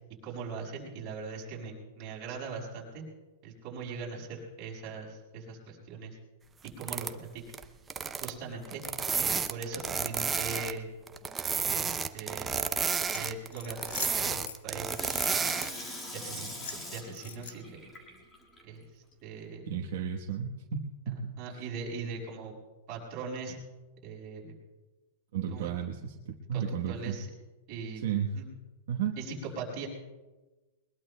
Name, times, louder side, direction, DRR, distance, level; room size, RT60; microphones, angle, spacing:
voice 1, 0.2-3.0 3.4-6.2 6.8-7.4 8.2-8.8 9.1-10.9 11.6-12.7 13.1-15.6 16.1-17.8 18.6-18.9 19.2-19.6 21.4-22.5 22.9-23.6 24.0-24.5 25.5-25.7 26.5-27.3 27.7-28.1 28.3-28.4 29.2-29.9, right 4 dB, 30° right, -3 dB, 5.4 m, -40 dB
sound 1, 6.7-7.1 7.5-7.7 7.9-8.3 8.7-10.8 11.1-15.7, right 6 dB, 10° right, 0.5 m, -31 dB
sound 2, 13.1-14.6 15.1-16.0 16.3-17.8, left 7 dB, 80° left, 1.1 m, -44 dB
Water tap faucet / Sink (filling or washing), 14.8-18.6 19.1-19.2, left 1 dB, 10° left, 1.9 m, -42 dB
voice 2, 19.7-21.6 25.3-27.2 28.0-28.3 28.9-29.2, right 8 dB, 60° right, 1 dB, 1.1 m, -33 dB
22.0 x 20.5 x 2.2 m, 1.2 s
supercardioid pair, 170°, 0 cm